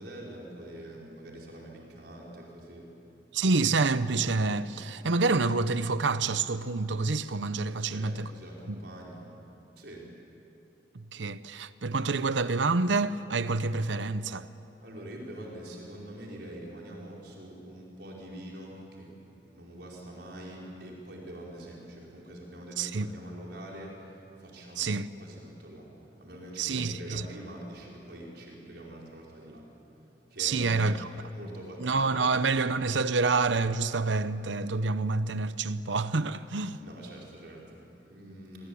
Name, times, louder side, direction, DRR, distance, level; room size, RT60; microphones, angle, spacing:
voice 1, 0.0-2.9 7.7-9.3 9.8-10.0 14.8-25.9 26.2-29.7 30.3-31.0 31.3-32.4 36.8-38.7, right 1 dB, 60° right, 5.1 m, -44 dB
voice 2, 3.3-8.3 8.7-8.8 10.9-14.5 22.8-23.1 24.8-25.1 26.6-27.2 30.4-31.1 31.8-36.8, right 3 dB, 80° right, 0.8 m, -28 dB
29.0 x 22.5 x 8.6 m
head